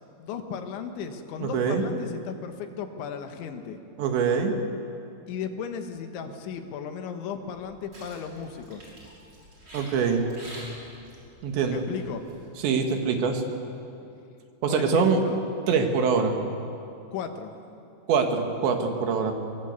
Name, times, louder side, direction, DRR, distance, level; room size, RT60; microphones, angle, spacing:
voice 1, 0.2-3.8 5.3-8.9 11.7-12.2 14.7-15.4 17.1-17.7, left 7 dB, 80° left, 6 dB, 3.8 m, -35 dB
voice 2, 1.4-1.8 4.0-4.6 9.7-10.2 11.4-11.8 12.6-13.4 14.6-15.2 15.7-16.4 18.1-19.3, right 5 dB, 75° right, 4 dB, 4.1 m, -24 dB
sound 1, 7.4-12.5, equal, 25° right, 6.0 m, -47 dB
23.5 x 21.5 x 8.2 m, 2.6 s
omnidirectional pair, 5.3 m